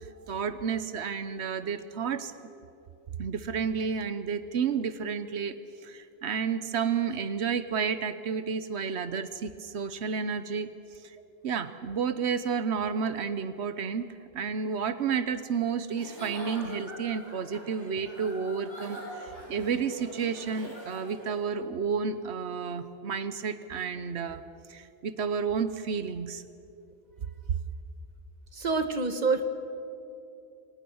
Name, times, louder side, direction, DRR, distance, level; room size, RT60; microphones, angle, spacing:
voice 1, 0.3-2.3 3.2-5.5 5.8-10.7 11.0-11.2 11.4-14.1 14.3-24.4 24.7-26.4, right 6 dB, 90° right, 12 dB, 1.2 m, -31 dB
Giggle / Chuckle chortle, 15.9-21.4, equal, 25° left, 7.0 m, -44 dB
voice 2, 28.6-29.4, right 4 dB, 40° right, 8 dB, 1.7 m, -26 dB
28.5 x 25.0 x 6.4 m, 2.7 s
omnidirectional pair, 1.1 m